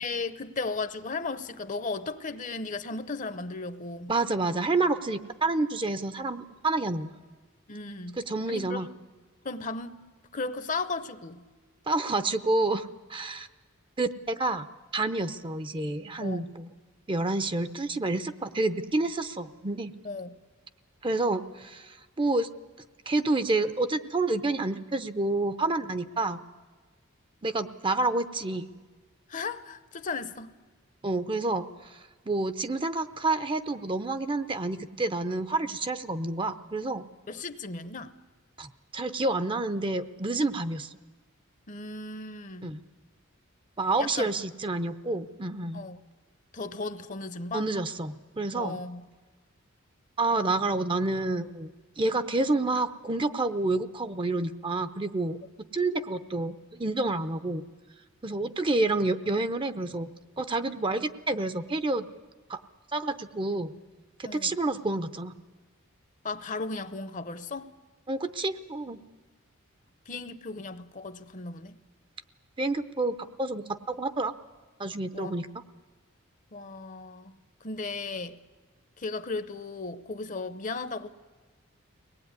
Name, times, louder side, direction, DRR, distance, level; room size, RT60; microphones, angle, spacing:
voice 1, 0.0-4.1 7.7-8.2 8.5-8.9 9.4-10.0 10.3-11.4 16.2-16.5 20.0-20.4 29.3-30.5 37.3-38.1 41.7-42.7 44.0-44.3 45.7-46.0 46.5-47.7 48.5-49.0 64.2-64.6 66.2-67.7 70.1-71.8 75.1-75.4 76.5-78.4 79.0-81.1, left 3 dB, 35° left, 0.8 m, -35 dB
voice 2, 4.1-7.2 8.2-8.9 11.9-13.5 14.0-14.7 14.9-16.7 17.1-19.9 21.0-22.5 23.1-26.4 27.4-28.7 31.0-31.6 32.3-37.1 38.6-40.9 42.6-42.8 43.8-45.8 47.5-48.8 50.2-51.7 52.0-55.4 55.7-57.6 58.2-60.1 60.4-62.1 62.5-62.6 62.9-63.7 64.2-65.4 68.1-69.0 72.6-74.3 74.8-75.5, right 2 dB, 25° right, 0.7 m, -29 dB
23.5 x 19.0 x 9.6 m
head